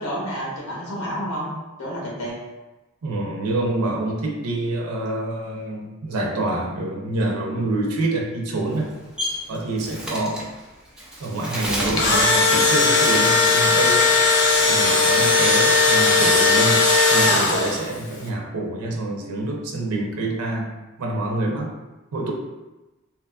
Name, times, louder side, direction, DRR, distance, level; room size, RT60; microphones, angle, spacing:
voice 1, 0.0-1.5 1.8-2.3, equal, 85° left, -4 dB, 0.8 m, -29 dB
voice 2, 3.0-8.9 9.5-10.4 11.2-14.1 14.7-20.7 21.0-21.7 22.1-22.3, right 2 dB, 90° right, 0 dB, 0.5 m, -26 dB
Bird, 8.6-14.1 14.4-15.7 16.1-17.8, equal, 5° right, 0.4 m, -32 dB
Engine / Drill, 11.9-18.0, left 3 dB, 55° left, 0.4 m, -17 dB
2.8 x 2.3 x 2.2 m, 1.1 s
head